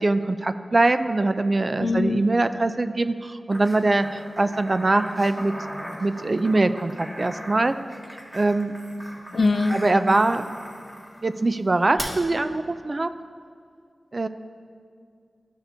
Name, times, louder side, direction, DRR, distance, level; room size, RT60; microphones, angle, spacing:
voice 1, 0.0-5.5 6.0-7.7 8.3-8.7 9.7-10.5 11.2-13.1 14.1-14.3, right 2 dB, 45° right, 10 dB, 0.3 m, -22 dB
voice 2, 1.8-2.2 9.3-9.8, left 3 dB, 70° left, 8 dB, 0.4 m, -22 dB
sound 1, 3.5-11.2 12.0-12.1, equal, 20° right, 1.7 m, -39 dB
13.0 x 6.1 x 2.6 m, 2.2 s
cardioid pair, 45°, 0 cm